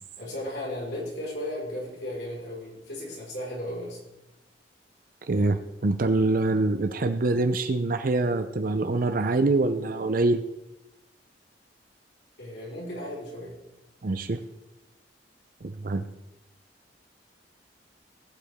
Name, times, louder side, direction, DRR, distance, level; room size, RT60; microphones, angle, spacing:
voice 1, 0.2-4.0 12.4-13.6, left 1 dB, 70° left, -4 dB, 4.7 m, -35 dB
voice 2, 5.3-10.4 14.0-14.4 15.6-16.0, right 2 dB, 50° right, 9 dB, 0.6 m, -25 dB
18.0 x 8.3 x 3.6 m, 0.96 s
head